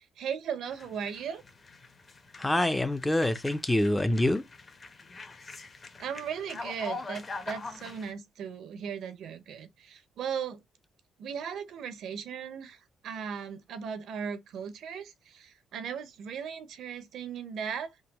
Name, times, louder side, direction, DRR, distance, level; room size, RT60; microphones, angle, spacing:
voice 1, 0.0-1.4 6.0-10.6 11.2-12.8 13.0-17.9, right 7 dB, 75° right, 0.6 m, -37 dB
sound 1, 0.7-8.1, left 3 dB, 35° left, 0.8 m, -44 dB
voice 2, 2.4-4.4, left 1 dB, 10° left, 0.4 m, -26 dB
3.6 x 2.2 x 2.9 m
cardioid pair, 90°, 0 cm